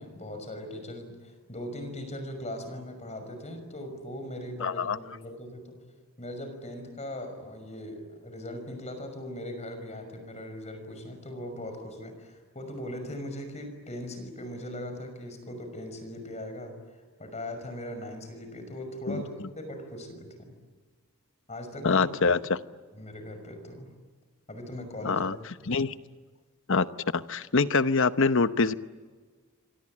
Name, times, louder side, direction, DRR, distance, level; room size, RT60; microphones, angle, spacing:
voice 1, 0.0-5.8 6.2-20.5 21.5-22.1 22.9-23.9 24.5-25.2, left 1 dB, 30° left, 7 dB, 5.8 m, -39 dB
voice 2, 4.6-5.0 19.1-19.2 21.8-22.6 25.0-25.4 25.6-26.0 26.7-26.9 27.1-28.7, left 4 dB, 65° left, 12 dB, 1.0 m, -24 dB
27.0 x 24.0 x 8.8 m, 1.5 s
head